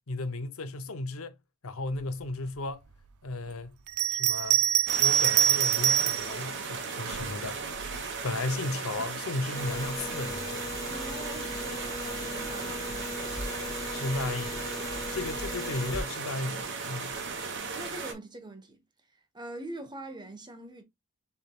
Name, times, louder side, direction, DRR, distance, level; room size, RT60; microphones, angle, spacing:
voice 1, 0.1-1.4 1.6-2.8 3.2-3.8 4.1-4.6 5.0-7.6 7.9-10.7 13.9-17.2, left 2 dB, 65° left, 0.7 m, -35 dB
Bell, 3.9-6.3 7.1-8.0, right 11 dB, 85° right, 0.4 m, -25 dB
sound 1, 4.9-18.1, right 4 dB, 55° right, 1.1 m, -36 dB
sound 2, 9.5-16.0, left 2 dB, 15° left, 0.8 m, -38 dB
voice 2, 10.9-13.0 17.7-18.8 19.3-20.8, right 1 dB, 20° right, 1.0 m, -43 dB
6.9 x 3.4 x 2.3 m
head